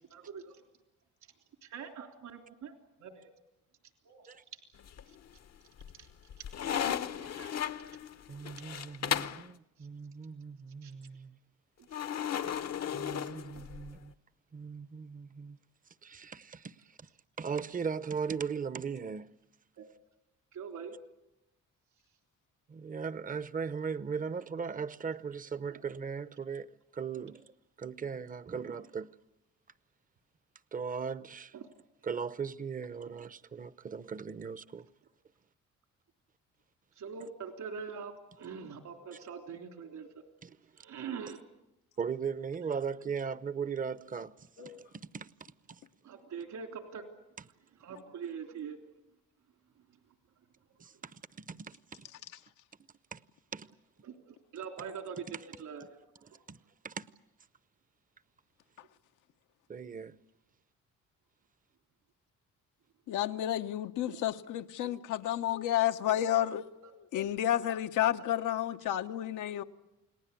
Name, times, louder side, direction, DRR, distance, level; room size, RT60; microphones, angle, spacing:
voice 1, 0.1-0.6 1.6-2.7 3.0-3.3 4.0-4.6 5.1-5.2 6.0-6.1 6.4-7.6 8.7-8.8 9.8-9.9 10.8-10.9 12.8-12.9 19.8-19.9 20.5-20.9 25.7-25.8 27.2-27.3 31.5-31.7 33.0-33.1 36.9-40.1 40.7-41.4 44.6-44.7 46.0-47.0 47.8-48.8 54.0-55.8 56.3-56.4 64.1-64.2 66.8-66.9 69.5-69.6, right 6 dB, 70° right, 3.5 m, -44 dB
sound 1, 4.8-5.4 5.8-9.5 11.9-14.0, left 9 dB, 60° left, 0.9 m, -35 dB
voice 2, 8.3-11.4 12.9-14.1 14.5-15.6 16.0-17.1 17.4-19.3 22.7-27.4 27.8-29.1 30.7-31.5 32.0-34.9 40.4-40.6 42.0-45.8 50.8-52.1 53.1-53.2 53.5-53.7 56.5-56.6 56.8-57.1 59.7-60.2, right 6 dB, 25° right, 0.8 m, -38 dB
voice 3, 63.1-69.6, left 12 dB, 85° left, 1.1 m, -31 dB
29.0 x 19.0 x 8.4 m
cardioid pair, 90°, 30 cm